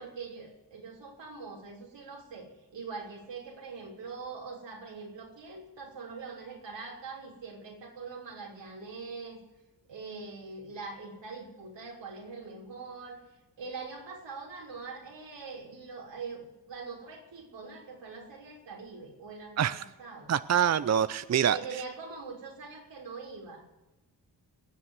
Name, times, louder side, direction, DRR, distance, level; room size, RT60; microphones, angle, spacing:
voice 1, 0.0-9.4 9.9-13.2 13.6-20.3 21.5-23.6, right 4 dB, 85° right, -2 dB, 3.6 m, -43 dB
voice 2, 20.3-21.6, right 9 dB, 40° right, 14 dB, 0.5 m, -25 dB
19.5 x 7.5 x 8.1 m, 1.0 s
supercardioid pair, 40°, 43 cm